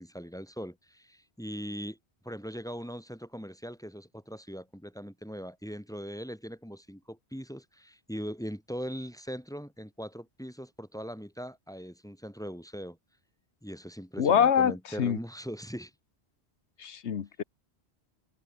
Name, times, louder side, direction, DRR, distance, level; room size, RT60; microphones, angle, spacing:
voice 1, 0.0-2.0 2.2-13.0 13.6-15.9, equal, 5° left, 4.2 m, -40 dB
voice 2, 14.2-15.2 16.8-17.4, left 8 dB, 80° left, 1.3 m, -25 dB
omnidirectional pair, 1.1 m